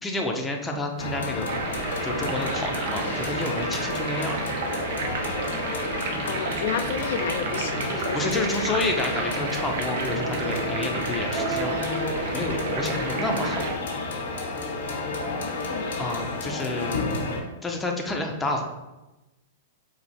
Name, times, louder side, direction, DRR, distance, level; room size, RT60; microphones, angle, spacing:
voice 1, 0.0-1.5 2.0-4.3 7.9-11.8 12.3-13.6 16.0-17.0 17.6-18.6, left 2 dB, 10° left, 1 dB, 0.6 m, -29 dB
sound 1, 1.0-17.4, left 3 dB, 85° left, 1.0 m, -31 dB
sound 2, 1.4-13.8, right 4 dB, 65° right, 0.6 m, -32 dB
voice 2, 6.2-8.8 15.1-16.0, left 7 dB, 65° left, 6 dB, 0.4 m, -32 dB
Speech, 7.1-7.3 7.8-8.1 8.4-8.5 8.9-9.5 9.9-10.1 10.5-10.9 11.2-12.2, right 2 dB, 45° right, 1.2 m, -34 dB
4.5 x 2.4 x 4.2 m, 1.0 s
hypercardioid pair, 135°, 0 cm